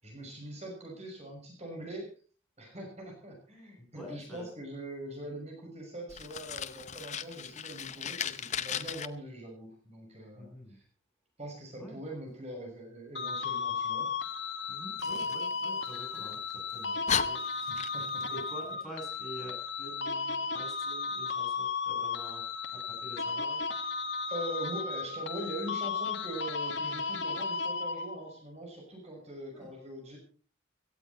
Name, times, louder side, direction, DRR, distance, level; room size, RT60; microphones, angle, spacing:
voice 1, 0.0-2.1 2.6-10.8 11.4-14.1 17.7-18.2 24.3-30.2, right 1 dB, 35° right, 1 dB, 6.2 m, -42 dB
voice 2, 3.8-4.5 10.3-10.8 11.8-12.0 14.7-17.4 18.2-22.4 22.7-23.6 29.5-29.7, right 1 dB, ahead, -3 dB, 7.8 m, -47 dB
Fire, 6.1-9.1 15.0-16.2 16.7-16.8 17.1-18.3, left 8 dB, 35° left, 0.8 m, -36 dB
sound 1, 13.2-28.4, left 4 dB, 65° left, 1.7 m, -35 dB
17.5 x 14.5 x 4.3 m, 0.37 s
head